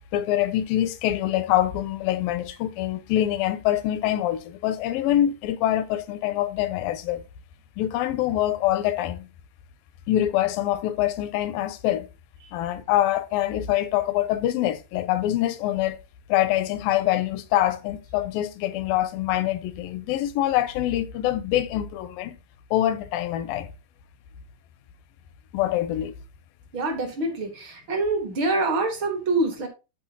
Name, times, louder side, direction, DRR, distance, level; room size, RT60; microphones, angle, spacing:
voice 1, 0.1-7.2 7.8-9.3 10.1-12.1 12.5-16.0 16.3-22.4 22.7-23.7 25.5-26.1, left 13 dB, 85° left, 2.4 m, -25 dB
voice 2, 26.7-29.7, right 2 dB, 50° right, 1.5 m, -25 dB
12.5 x 4.5 x 2.8 m
omnidirectional pair, 4.1 m